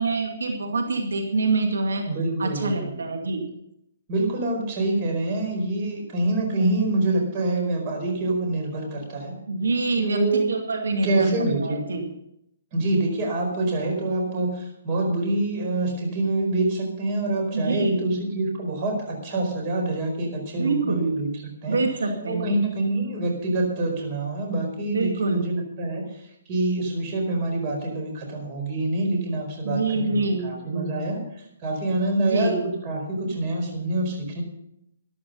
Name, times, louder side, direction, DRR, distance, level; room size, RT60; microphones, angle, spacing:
voice 1, 0.0-2.0 2.4-3.4 9.5-10.2 10.5-12.0 17.5-18.1 20.5-21.0 21.7-22.6 24.9-25.4 29.6-30.9 32.2-32.7, right 3 dB, 90° right, 4 dB, 2.3 m, -26 dB
voice 2, 2.1-3.0 4.1-9.3 10.0-10.5 11.0-11.8 12.7-21.3 21.6-21.8 22.3-26.1 26.5-31.2 31.6-34.4, right 2 dB, 30° right, 1 dB, 4.8 m, -26 dB
13.0 x 12.0 x 5.5 m, 0.78 s
hypercardioid pair, 160°, 0 cm